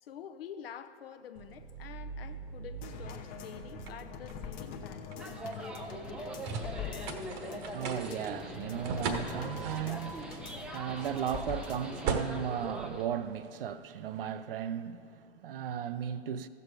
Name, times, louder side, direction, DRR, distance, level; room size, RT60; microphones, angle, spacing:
voice 1, 0.0-5.3, left 8 dB, 60° left, 0.7 m, -48 dB
sound 1, 1.3-13.7, right 5 dB, 35° right, 1.1 m, -41 dB
sound 2, 2.8-12.2 12.6-12.7, left 8 dB, 25° left, 0.8 m, -44 dB
sound 3, 5.2-13.1, right 1 dB, 5° right, 0.4 m, -42 dB
voice 2, 7.3-16.5, right 9 dB, 55° right, 0.6 m, -36 dB
14.5 x 6.9 x 4.8 m
figure-of-eight pair, 110°, 34 cm